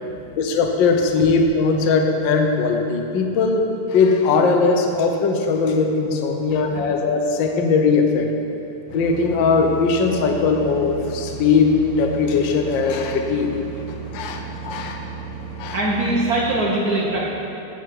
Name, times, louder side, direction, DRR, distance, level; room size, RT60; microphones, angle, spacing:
voice 1, 0.4-8.3 8.9-13.5 14.1-15.0 15.6-15.8, left 4 dB, 85° left, 4 dB, 1.0 m, -19 dB
sound 1, 8.9-16.6, right 5 dB, 50° left, 2.3 m, -35 dB
voice 2, 15.7-17.2, right 1 dB, 75° right, -4 dB, 0.8 m, -22 dB
16.0 x 7.0 x 6.1 m, 2.8 s
omnidirectional pair, 3.6 m